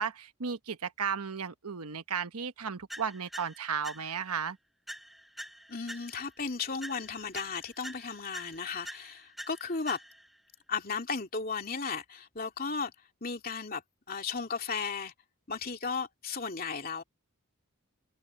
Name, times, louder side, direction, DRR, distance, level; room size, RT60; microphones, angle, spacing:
voice 1, 0.0-4.6, right 6 dB, 85° right, 1.1 m, -34 dB
sound 1, 2.9-4.4 4.9-6.4 6.8-10.4, equal, ahead, 1.7 m, -46 dB
voice 2, 5.7-10.0 10.7-12.9 13.2-13.8 14.1-15.1 15.5-17.0, left 5 dB, 40° left, 2.8 m, -35 dB
head